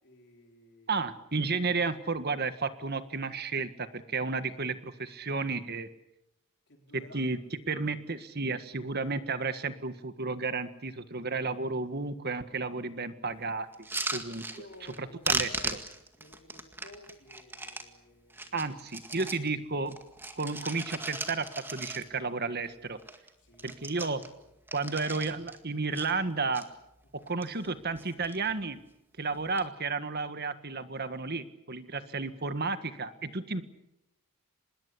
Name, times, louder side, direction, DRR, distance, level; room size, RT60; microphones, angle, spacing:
voice 1, 0.0-1.1 6.7-7.3 14.5-15.8 16.2-18.7 23.4-24.0 27.0-27.3 32.1-32.3, left 2 dB, 50° left, 1 dB, 4.5 m, -54 dB
voice 2, 0.9-5.9 6.9-7.4 7.7-13.9 14.1-14.5 15.0-15.8 18.5-20.0 20.3-23.0 23.6-24.2 24.7-26.6 27.3-28.8 29.2-33.6, right 4 dB, 45° right, 11 dB, 1.6 m, -32 dB
sound 1, 13.7-15.0 15.2-17.9 18.3-19.5 19.9-22.3 22.7-22.8 23.0-23.3 23.5-25.6 25.9-26.6 27.2-27.7 28.0-28.5 29.3-29.6, right 2 dB, 10° right, 2.0 m, -37 dB
26.0 x 21.0 x 8.5 m, 0.86 s
head